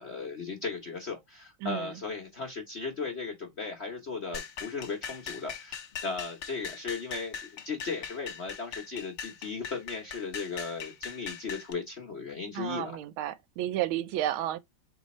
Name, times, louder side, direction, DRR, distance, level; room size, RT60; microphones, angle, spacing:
voice 1, 0.0-12.9, left 4 dB, 50° left, 0.8 m, -36 dB
voice 2, 1.6-1.9 12.5-14.6, right 13 dB, 85° right, 1.4 m, -32 dB
sound 1, 4.3-11.7, left 7 dB, 80° left, 0.6 m, -41 dB
3.9 x 3.3 x 4.1 m
omnidirectional pair, 2.2 m